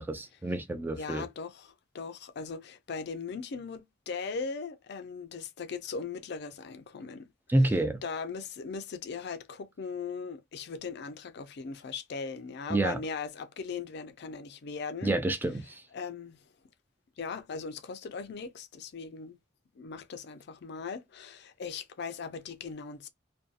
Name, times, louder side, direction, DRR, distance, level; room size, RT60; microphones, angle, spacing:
voice 1, 0.0-1.3 7.5-8.0 12.7-13.0 15.0-15.8, right 1 dB, 10° right, 0.3 m, -28 dB
voice 2, 0.9-7.3 7.6-7.7 8.0-15.2 15.9-16.4 17.2-19.4 19.8-23.1, left 5 dB, 60° left, 0.4 m, -39 dB
2.6 x 2.2 x 2.4 m
head